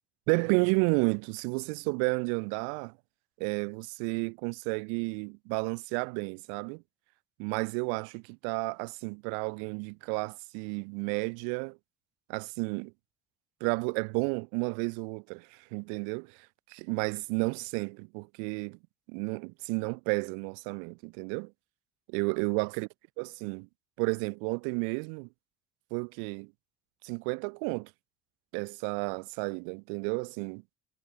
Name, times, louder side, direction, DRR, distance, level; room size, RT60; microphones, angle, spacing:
voice 1, 0.3-2.9 3.4-6.8 7.4-11.8 12.3-12.9 13.6-16.4 16.7-18.8 19.1-21.5 22.1-22.9 23.2-23.7 24.0-25.3 25.9-26.5 27.0-27.9 28.5-30.6, right 40 dB or more, 75° right, 0.5 m, -32 dB
hypercardioid pair, 50°, 40 cm